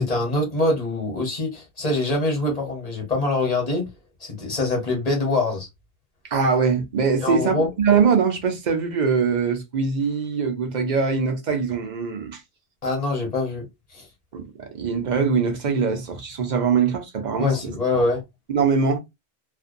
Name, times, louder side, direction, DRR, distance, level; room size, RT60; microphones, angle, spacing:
voice 1, 0.0-3.9 4.2-5.7 7.2-7.7 12.8-13.6 13.9-14.1 17.4-18.2, left 2 dB, 40° left, 1.1 m, -24 dB
voice 2, 6.3-12.4 14.3-14.4 14.7-18.0 18.5-19.0, right 5 dB, 50° right, 0.7 m, -22 dB
2.5 x 2.2 x 2.5 m
omnidirectional pair, 1.1 m